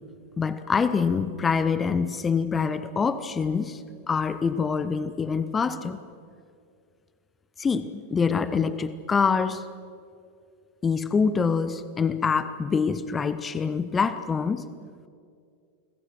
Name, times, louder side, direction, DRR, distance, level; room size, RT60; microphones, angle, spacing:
voice 1, 0.4-6.0 7.6-9.7 10.8-14.7, left 5 dB, 20° left, 14 dB, 1.0 m, -25 dB
29.5 x 21.0 x 6.3 m, 2.3 s
figure-of-eight pair, 90°, 0 cm